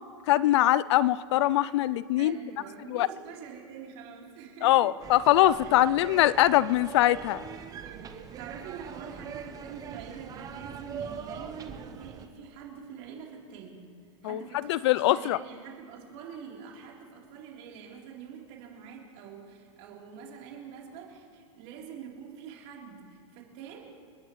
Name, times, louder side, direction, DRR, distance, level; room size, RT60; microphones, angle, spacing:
voice 1, 0.3-2.4 2.9-3.1 4.6-7.4 14.2-15.4, left 14 dB, 60° left, 19 dB, 0.4 m, -23 dB
voice 2, 2.2-5.0 5.6-5.7 7.8-13.9 14.2-24.0, right 7 dB, 50° right, -2 dB, 3.6 m, -45 dB
sound 1, 5.0-12.3, right 7 dB, 25° right, 0.9 m, -42 dB
29.5 x 11.0 x 3.2 m, 2.3 s
hypercardioid pair, 130°, 16 cm